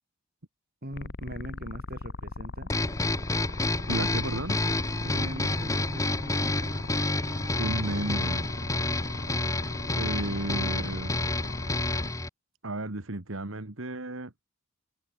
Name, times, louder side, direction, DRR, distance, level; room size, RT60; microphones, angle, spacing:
voice 1, 0.8-2.7 5.0-6.8, right 1 dB, 45° right, 6.3 m, -41 dB
sound 1, 0.9-12.1, left 2 dB, 50° left, 1.3 m, -40 dB
sound 2, 2.7-12.3, left 2 dB, 15° left, 1.2 m, -29 dB
voice 2, 3.9-4.6 7.6-8.5 10.0-11.2 12.6-14.3, right 2 dB, 70° right, 1.9 m, -33 dB
head